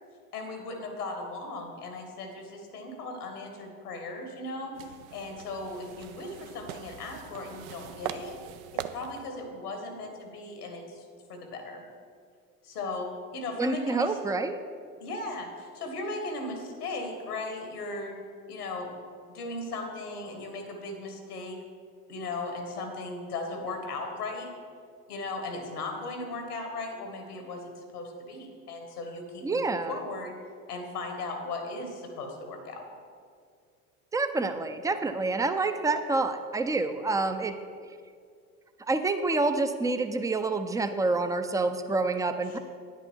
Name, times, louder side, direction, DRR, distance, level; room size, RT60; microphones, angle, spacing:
voice 1, 0.3-8.4 8.7-11.8 12.6-14.1 15.0-18.1 18.5-18.9 19.3-21.6 22.1-24.5 25.1-29.6 29.9-30.3 30.7-32.8 42.5-42.6, left 2 dB, 85° left, 4 dB, 1.7 m, -37 dB
sound 1, 4.7-9.3, right 11 dB, 65° right, 0.6 m, -41 dB
voice 2, 13.6-14.6 29.4-30.0 34.1-37.6 38.8-42.6, right 3 dB, 10° right, 9 dB, 0.5 m, -27 dB
9.8 x 8.2 x 4.6 m, 2.2 s
hypercardioid pair, 70°, 45 cm